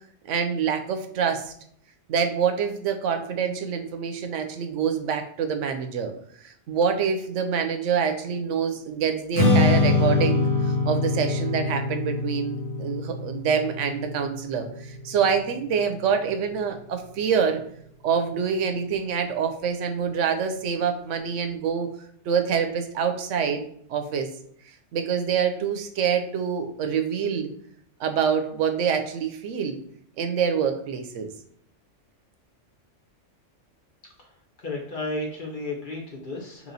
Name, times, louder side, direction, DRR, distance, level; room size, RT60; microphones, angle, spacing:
voice 1, 0.3-1.5 2.1-6.1 6.4-17.6 18.0-21.9 22.3-23.6 23.9-24.3 24.9-27.5 28.0-29.8 30.2-31.3, right 7 dB, 80° right, 6 dB, 0.9 m, -26 dB
Strum, 9.3-15.6, left 3 dB, 85° left, 1.5 m, -24 dB
voice 2, 34.6-36.7, left 2 dB, 45° left, -1 dB, 0.9 m, -33 dB
3.0 x 2.9 x 3.9 m, 0.64 s
omnidirectional pair, 1.3 m